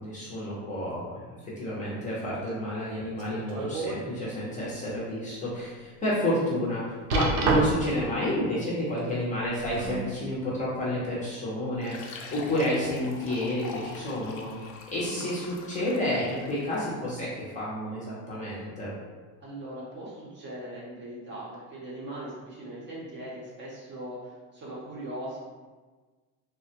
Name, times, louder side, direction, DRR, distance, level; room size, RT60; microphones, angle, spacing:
voice 1, 0.0-14.5 14.9-18.9, left 1 dB, 20° left, -7 dB, 0.5 m, -30 dB
sound 1, 3.2-4.0 4.5-4.6 5.2-5.3 7.1-8.0 9.4-10.1 11.0-11.1, right 3 dB, 75° right, 0.7 m, -27 dB
Fill (with liquid), 11.7-16.9, left 4 dB, 90° left, 0.6 m, -43 dB
voice 2, 19.4-25.4, right 1 dB, 30° right, -5 dB, 0.6 m, -40 dB
3.3 x 2.1 x 2.7 m, 1.3 s
cardioid pair, 160°, 38 cm